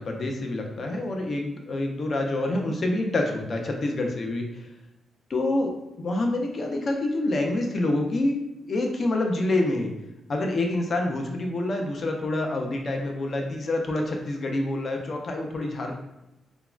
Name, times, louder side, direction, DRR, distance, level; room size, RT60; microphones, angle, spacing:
voice 1, 0.0-4.6 5.3-9.9 10.3-15.9, left 2 dB, 45° left, 2 dB, 0.5 m, -27 dB
3.4 x 2.0 x 2.4 m, 0.92 s
cardioid pair, 125°, 0 cm